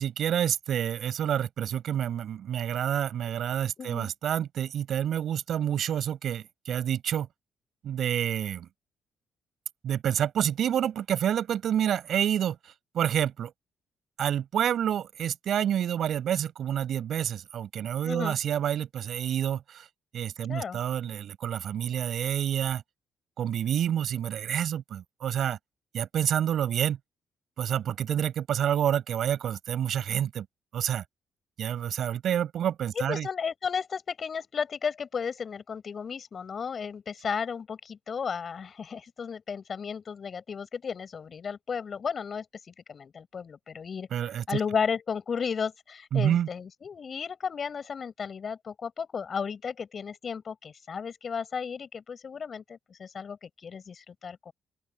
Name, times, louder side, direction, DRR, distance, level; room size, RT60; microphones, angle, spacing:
voice 1, 0.0-7.3 7.8-8.7 9.8-12.6 12.9-13.5 14.2-19.9 20.1-22.8 23.4-25.6 25.9-27.0 27.6-30.5 30.7-31.0 31.6-33.3 44.1-44.6 46.1-46.5, right 10 dB, 65° right, 7.7 m, -28 dB
voice 2, 3.8-4.1 18.0-18.3 20.5-20.8 33.1-54.5, left 6 dB, 45° left, 6.9 m, -34 dB
open air
cardioid pair, 90°, 0 cm